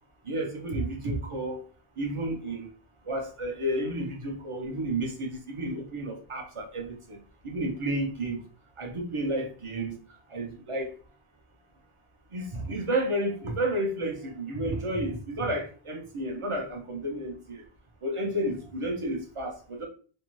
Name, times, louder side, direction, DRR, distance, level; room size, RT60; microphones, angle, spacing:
voice 1, 0.2-1.6 2.0-2.7 3.1-7.2 7.4-8.4 8.8-10.0 10.3-10.9 12.3-17.6 18.0-19.9, right 1 dB, 40° right, 2 dB, 0.5 m, -31 dB
2.6 x 2.1 x 3.0 m, 0.41 s
omnidirectional pair, 1.0 m